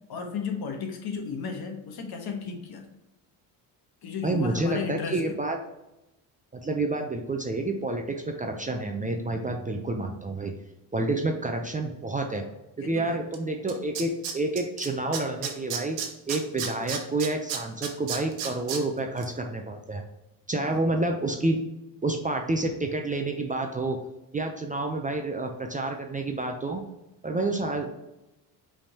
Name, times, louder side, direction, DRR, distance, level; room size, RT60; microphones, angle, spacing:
voice 1, 0.1-2.9 4.0-5.2 12.3-12.4 12.8-13.2 20.6-20.8, left 5 dB, 55° left, 4 dB, 1.2 m, -34 dB
voice 2, 4.2-5.6 6.5-10.5 10.9-12.4 12.9-16.0 16.3-20.0 20.5-21.6 22.0-24.0 24.3-26.8 27.2-27.9, right 2 dB, 20° right, 3 dB, 0.5 m, -29 dB
Tools, 13.3-13.4 13.7-14.9 15.1-18.8 19.2-19.3, right 7 dB, 85° right, 1.0 m, -32 dB
5.1 x 3.6 x 2.8 m, 0.95 s
cardioid pair, 90°, 45 cm